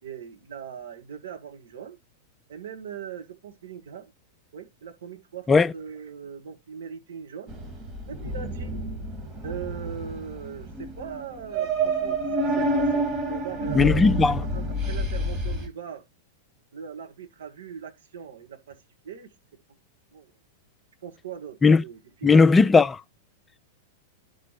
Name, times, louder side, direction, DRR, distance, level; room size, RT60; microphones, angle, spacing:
voice 1, 0.0-2.0 2.5-4.1 4.5-7.5 8.0-8.8 9.4-12.2 12.6-13.0 13.3-16.0 16.7-18.8 19.0-19.3 20.1-20.3 21.0-22.4, right 7 dB, 65° right, 1.5 m, -40 dB
sound 1, 7.5-15.7, right 1 dB, 30° right, 2.0 m, -28 dB
voice 2, 13.7-14.4 21.6-21.8 22.2-23.0, left 4 dB, 15° left, 0.3 m, -17 dB
11.5 x 4.2 x 3.2 m
figure-of-eight pair, 95°, 0 cm